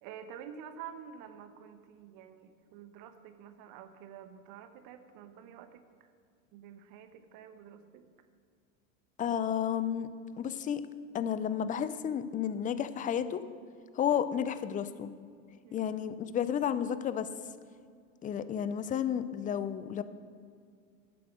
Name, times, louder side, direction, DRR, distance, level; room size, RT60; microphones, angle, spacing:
voice 1, 0.0-6.1 6.5-8.1 15.6-16.0, right 8 dB, 55° right, 9 dB, 1.2 m, -49 dB
voice 2, 9.2-10.1 10.4-10.8 11.1-13.4 13.9-15.1 15.7-17.3 18.2-20.0, left 9 dB, 20° left, 13 dB, 0.5 m, -32 dB
11.5 x 7.6 x 6.3 m, 2.2 s
hypercardioid pair, 100°, 39 cm